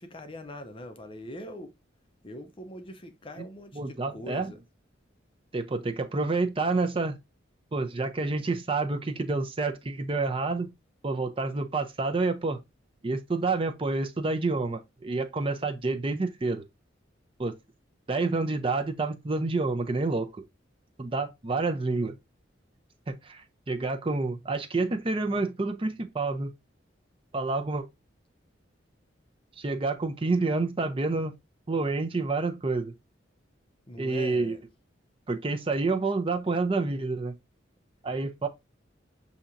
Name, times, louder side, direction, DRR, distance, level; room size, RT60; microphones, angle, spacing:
voice 1, 0.0-1.7 2.2-4.6 33.9-34.6, left 1 dB, 30° left, 0.5 m, -42 dB
voice 2, 3.7-4.5 5.5-7.2 7.7-10.7 11.0-12.6 13.0-16.6 17.4-17.5 18.1-20.4 21.0-22.2 23.1-26.5 27.3-27.8 29.6-31.3 31.7-32.9 34.0-34.6 35.3-37.3 38.0-38.5, right 3 dB, 30° right, 0.5 m, -28 dB
6.9 x 2.8 x 2.5 m
head